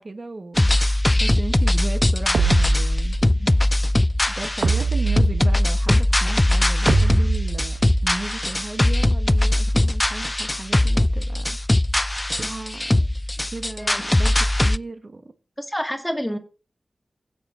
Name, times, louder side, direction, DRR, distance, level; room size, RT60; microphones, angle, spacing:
voice 1, 0.0-3.2 3.6-3.8 4.3-11.6 12.1-12.9 13.5-15.3, right 2 dB, 50° right, 1.3 m, -35 dB
sound 1, 0.6-14.8, left 1 dB, 20° left, 0.4 m, -20 dB
sound 2, 2.3-3.4 4.6-5.9 6.9-8.1, right 4 dB, 80° right, 1.2 m, -24 dB
voice 2, 15.6-16.4, equal, 5° left, 1.8 m, -28 dB
16.0 x 6.4 x 3.8 m
cardioid pair, 55°, 0 cm